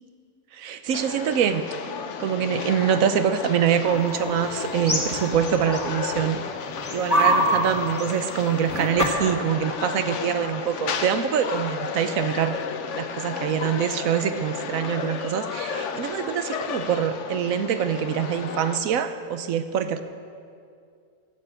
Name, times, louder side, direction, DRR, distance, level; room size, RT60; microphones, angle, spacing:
voice 1, 0.5-1.6 2.2-6.4 6.9-12.6 12.9-20.0, right 8 dB, 70° right, 10 dB, 1.1 m, -25 dB
sound 1, 0.9-18.8, left 6 dB, 60° left, 1.0 m, -33 dB
sound 2, 3.9-6.3 6.7-9.3, right 1 dB, 10° left, 1.6 m, -26 dB
12.5 x 8.4 x 7.8 m, 2.3 s
omnidirectional pair, 1.6 m